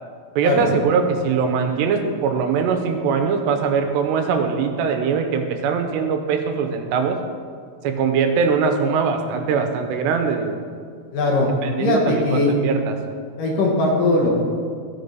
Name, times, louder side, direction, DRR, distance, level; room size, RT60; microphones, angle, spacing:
voice 1, 0.4-7.2 7.8-10.6 11.6-13.0, right 5 dB, 90° right, 6 dB, 3.0 m, -21 dB
voice 2, 11.1-11.5 11.8-12.5 13.4-14.4, left 2 dB, 60° left, -2 dB, 2.6 m, -19 dB
15.0 x 6.0 x 5.4 m, 2.1 s
omnidirectional pair, 4.8 m